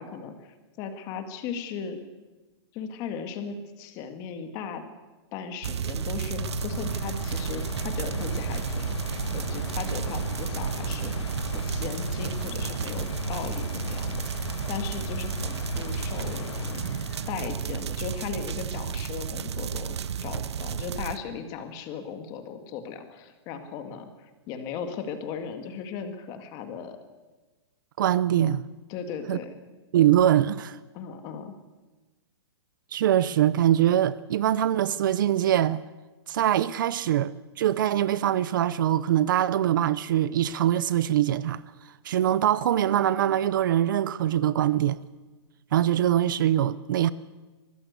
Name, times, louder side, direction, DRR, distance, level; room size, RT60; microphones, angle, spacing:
voice 1, 0.0-2.0 2.7-4.8 5.3-11.1 11.5-16.9 17.3-20.0 20.2-27.0 28.9-29.6 30.9-31.5, left 6 dB, 25° left, 1.9 m, -37 dB
sound 1, 5.6-21.2, right 8 dB, 80° right, 0.9 m, -32 dB
sound 2, 6.4-20.0 20.6-20.7, left 8 dB, 80° left, 0.6 m, -38 dB
voice 2, 28.0-28.6 29.3-29.4 29.9-30.8 32.9-35.8 36.3-41.6 42.0-45.0 45.7-47.1, right 11 dB, 50° right, 0.6 m, -23 dB
23.0 x 15.0 x 8.1 m
hypercardioid pair, 165°, 14 cm